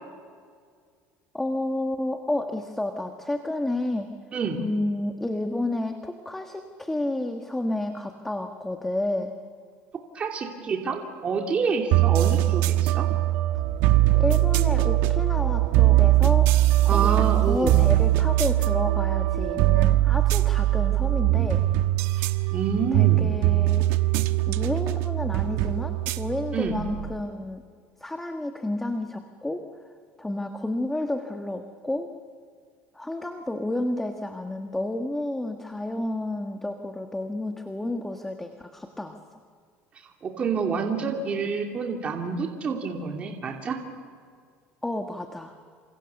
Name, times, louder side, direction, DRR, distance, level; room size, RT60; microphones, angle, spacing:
voice 1, 1.3-4.1 4.6-9.3 14.1-16.5 16.8-21.6 22.9-23.9 24.5-27.6 28.0-29.6 30.2-32.1 32.9-39.4 44.8-45.5, left 1 dB, 5° left, 5 dB, 1.4 m, -30 dB
voice 2, 10.1-13.1 16.9-17.8 22.2-23.3 26.5-26.8 40.0-43.8, right 5 dB, 30° right, 2 dB, 2.8 m, -28 dB
sound 1, 11.9-27.2, right 16 dB, 75° right, 1.2 m, -21 dB
29.0 x 27.5 x 7.1 m, 2.1 s
cardioid pair, 145°, 4 cm